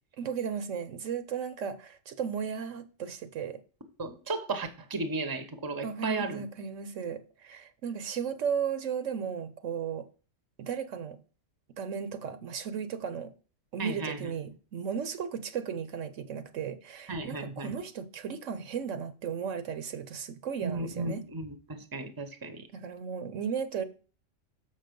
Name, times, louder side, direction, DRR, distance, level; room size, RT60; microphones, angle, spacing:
voice 1, 0.2-3.6 5.8-10.1 10.6-11.2 11.8-13.3 13.7-21.2 22.7-23.8, right 7 dB, 75° right, 1.2 m, -35 dB
voice 2, 4.0-6.4 13.8-14.2 17.1-17.7 20.6-22.6, right 3 dB, 20° right, 0.9 m, -34 dB
7.0 x 5.7 x 5.2 m
omnidirectional pair, 1.3 m